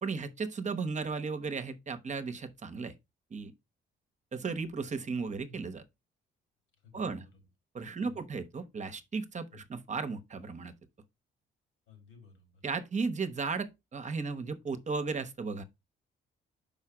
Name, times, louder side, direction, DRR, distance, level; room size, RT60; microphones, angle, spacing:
voice 1, 0.0-2.9 3.3-3.5 4.3-5.8 6.9-7.2 7.7-10.7 12.6-15.6, right 4 dB, 35° right, 1.0 m, -35 dB
voice 2, 6.8-7.5 8.0-8.2 9.5-9.6 11.9-12.6, left 5 dB, 80° left, 3.8 m, -56 dB
5.7 x 5.3 x 4.8 m
cardioid pair, 90°, 20 cm